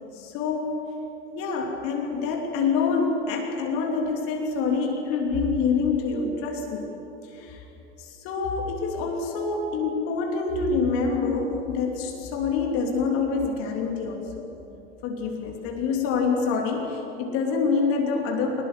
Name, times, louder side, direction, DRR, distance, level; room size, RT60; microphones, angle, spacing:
voice 1, 0.1-0.8 1.3-6.9 7.3-7.6 8.0-14.5 15.0-18.6, left 4 dB, 45° left, 2 dB, 3.0 m, -26 dB
23.5 x 20.5 x 7.7 m, 3.0 s
figure-of-eight pair, 80°, 32 cm